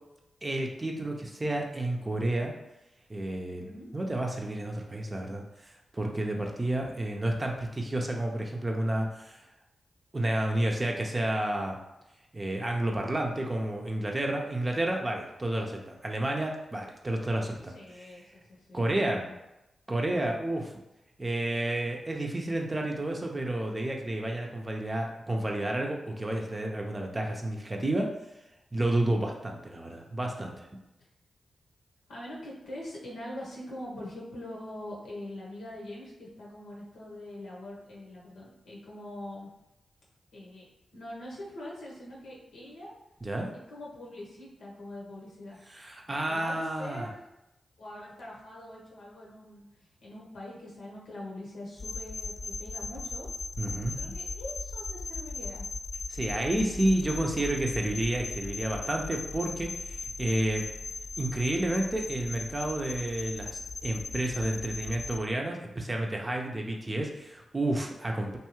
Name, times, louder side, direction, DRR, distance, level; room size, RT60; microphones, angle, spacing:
voice 1, 0.4-2.5 3.1-9.4 10.1-11.8 12.3-18.2 18.7-19.3 19.9-20.7 21.2-28.1 28.7-30.7 43.2-43.5 45.7-47.1 53.6-54.0 56.1-60.6 61.2-68.4, right 1 dB, 30° right, 1 dB, 0.5 m, -30 dB
voice 2, 3.6-3.9 17.7-19.4 32.1-39.5 40.3-40.7 40.9-42.9 43.7-45.6 46.3-47.2 47.8-53.3 53.9-55.7, left 1 dB, 80° left, -4 dB, 0.8 m, -43 dB
sound 1, 51.8-65.2, left 3 dB, 45° left, 0.3 m, -38 dB
2.7 x 2.3 x 3.0 m, 0.92 s
supercardioid pair, 40°, 0 cm